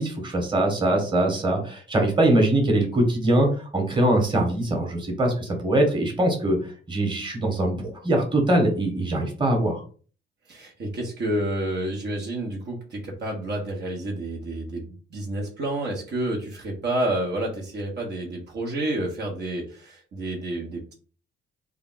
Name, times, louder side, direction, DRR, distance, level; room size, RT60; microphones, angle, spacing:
voice 1, 0.0-9.8, right 1 dB, 25° right, 2 dB, 1.4 m, -22 dB
voice 2, 10.5-20.9, right 1 dB, 60° right, -1 dB, 1.2 m, -29 dB
3.4 x 2.4 x 3.9 m, 0.40 s
cardioid pair, 90°, 20 cm